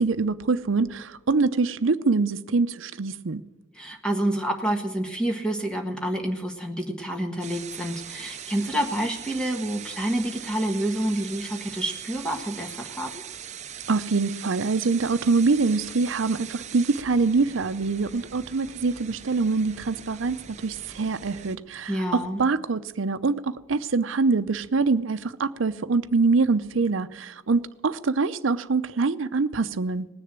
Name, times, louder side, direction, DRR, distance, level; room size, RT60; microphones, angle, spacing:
voice 1, 0.0-3.4 13.9-30.1, right 4 dB, 85° right, 12 dB, 0.6 m, -24 dB
voice 2, 3.7-13.1 21.9-22.4, right 1 dB, 5° left, 3 dB, 1.5 m, -28 dB
sound 1, 7.4-21.6, right 8 dB, 35° right, 0.7 m, -41 dB
19.0 x 6.8 x 8.8 m, 1.1 s
head